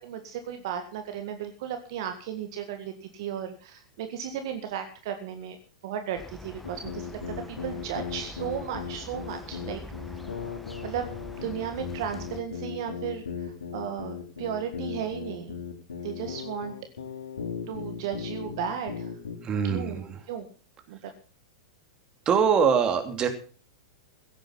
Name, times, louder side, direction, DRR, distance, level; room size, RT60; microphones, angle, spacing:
voice 1, 0.0-5.6 5.8-9.8 10.8-11.1 11.4-15.5 16.0-16.7 17.7-19.1 19.6-20.0 20.3-20.5 20.9-21.1, right 8 dB, 55° right, 6 dB, 1.7 m, -35 dB
sound 1, 6.2-12.4, left 1 dB, 5° left, 1.4 m, -44 dB
sound 2, 6.6-19.4, left 6 dB, 70° left, 4.2 m, -37 dB
voice 2, 19.4-20.2 22.3-23.3, right 7 dB, 30° right, 6 dB, 2.8 m, -23 dB
16.5 x 9.1 x 5.7 m, 0.40 s
figure-of-eight pair, 95°, 3 cm